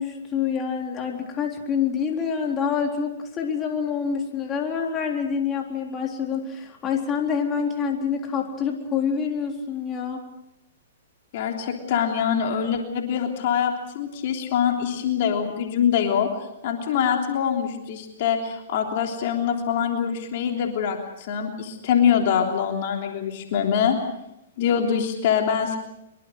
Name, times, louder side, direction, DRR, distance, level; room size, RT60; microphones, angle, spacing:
voice 1, 0.0-10.2, left 6 dB, 25° left, 2 dB, 3.9 m, -26 dB
voice 2, 11.3-16.3 16.6-24.0 24.6-25.8, left 8 dB, 55° left, 3 dB, 3.3 m, -24 dB
24.5 x 23.5 x 6.5 m, 0.85 s
hypercardioid pair, 130°, 0 cm